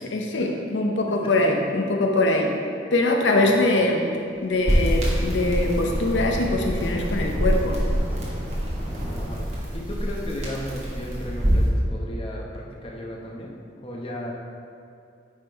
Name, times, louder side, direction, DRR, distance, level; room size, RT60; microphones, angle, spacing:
voice 1, 0.0-2.5 2.9-4.0 4.4-7.8, left 2 dB, 90° left, 1 dB, 0.7 m, -22 dB
sound 1, 4.3-11.6, equal, 10° right, 0.7 m, -31 dB
sound 2, 4.7-11.7, equal, 35° right, 1.5 m, -26 dB
voice 2, 9.0-9.4 9.7-14.3, equal, 30° left, -2 dB, 0.8 m, -35 dB
9.2 x 3.6 x 4.6 m, 2.4 s
head